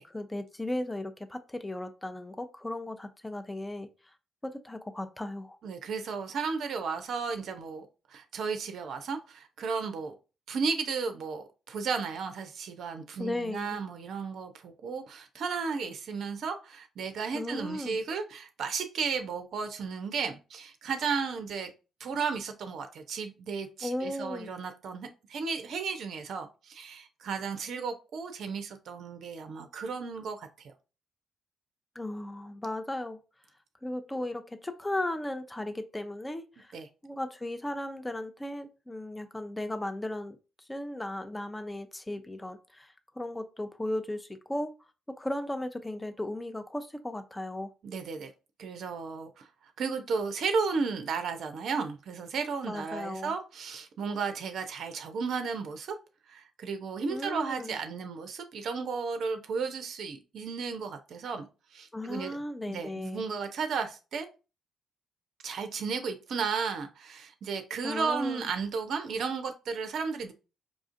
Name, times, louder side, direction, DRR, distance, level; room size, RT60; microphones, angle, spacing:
voice 1, 0.1-3.9 4.4-5.6 13.2-13.8 17.3-18.0 23.8-24.5 32.0-33.2 33.8-36.8 37.0-40.4 40.7-44.7 45.1-47.7 52.7-53.3 57.1-57.8 61.9-63.2 67.8-68.5, left 1 dB, 15° left, 0.6 m, -36 dB
voice 2, 5.6-10.1 10.5-21.7 22.0-30.7 36.7-36.9 47.8-48.3 48.6-56.0 56.3-61.5 61.7-64.3 65.4-70.3, right 5 dB, 60° right, 0.5 m, -34 dB
4.9 x 2.4 x 2.5 m
hypercardioid pair, 45°, 0 cm